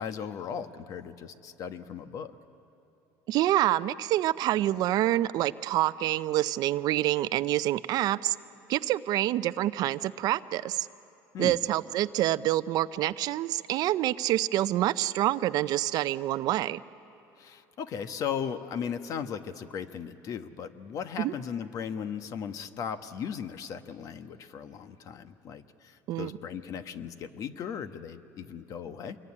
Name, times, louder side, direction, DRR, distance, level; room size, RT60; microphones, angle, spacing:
voice 1, 0.0-2.3 11.3-11.6 17.4-29.2, left 7 dB, 50° left, 9 dB, 1.2 m, -37 dB
voice 2, 3.3-8.4 8.7-10.9 11.4-16.8 21.2-21.3 26.1-26.3, right 14 dB, 60° right, 15 dB, 0.6 m, -27 dB
26.5 x 22.0 x 9.8 m, 3.0 s
cardioid pair, 125°, 8 cm